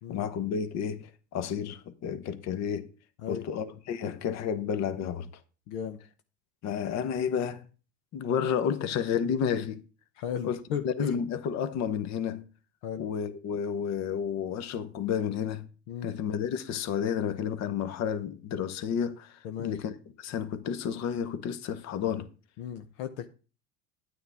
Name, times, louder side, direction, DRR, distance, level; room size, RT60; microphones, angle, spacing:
voice 1, 0.1-2.9 3.3-5.3 6.6-7.6 8.1-9.8 10.4-10.6 10.8-12.4 13.0-15.7 16.0-22.3, left 8 dB, 50° left, 1.1 m, -31 dB
voice 2, 5.7-6.0 10.2-11.1 12.8-13.1 15.9-16.1 19.4-19.8 22.6-23.3, left 8 dB, 75° left, 0.9 m, -35 dB
9.5 x 9.3 x 3.5 m
supercardioid pair, 95°, 34 cm